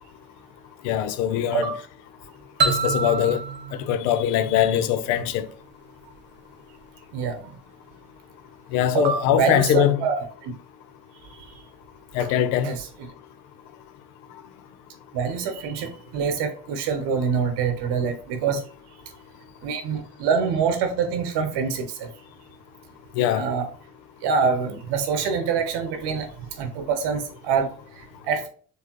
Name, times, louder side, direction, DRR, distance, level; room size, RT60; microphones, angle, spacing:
voice 1, 0.8-1.7 2.6-3.4 3.7-5.5 8.7-10.0 12.1-12.7 23.2-23.5, left 10 dB, 70° left, 0.6 m, -22 dB
sound 1, 2.6-5.3, right 5 dB, 25° right, 0.7 m, -27 dB
voice 2, 7.1-7.5 8.9-10.5 12.2-12.3 12.6-12.9 15.1-18.6 19.6-22.1 23.3-23.7 24.2-26.3 26.6-27.7 28.0-28.5, right 6 dB, 60° right, 0.9 m, -25 dB
4.6 x 3.3 x 2.9 m
hypercardioid pair, 50°, 46 cm